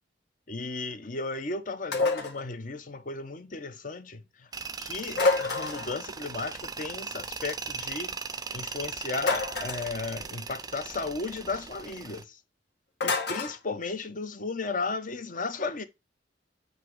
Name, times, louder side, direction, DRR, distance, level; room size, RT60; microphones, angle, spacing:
voice 1, 0.5-4.5 4.8-8.2 8.5-12.4 13.0-15.9, left 3 dB, 45° left, 0.9 m, -35 dB
sound 1, 1.9-2.4 5.1-6.0 9.2-9.9 13.0-13.6, left 3 dB, 65° left, 2.0 m, -27 dB
Tools, 4.5-12.2, right 5 dB, 20° right, 0.4 m, -39 dB
8.3 x 2.9 x 4.6 m
head